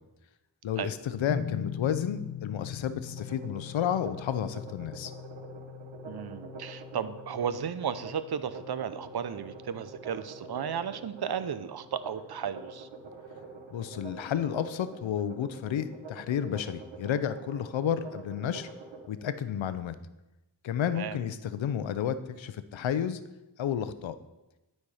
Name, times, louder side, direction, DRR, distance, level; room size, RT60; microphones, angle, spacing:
voice 1, 0.6-5.1 13.7-18.7 19.1-20.0 20.6-23.2 23.6-24.2, left 9 dB, 85° left, 13 dB, 0.6 m, -31 dB
sound 1, 1.3-14.2, left 8 dB, 35° left, 0.9 m, -43 dB
sound 2, 3.1-19.1, right 4 dB, 85° right, 1.1 m, -46 dB
voice 2, 6.0-12.9 20.8-21.2, right 8 dB, 55° right, 13 dB, 0.6 m, -34 dB
11.5 x 4.4 x 4.8 m, 1.0 s
wide cardioid pair, 70°, 45 cm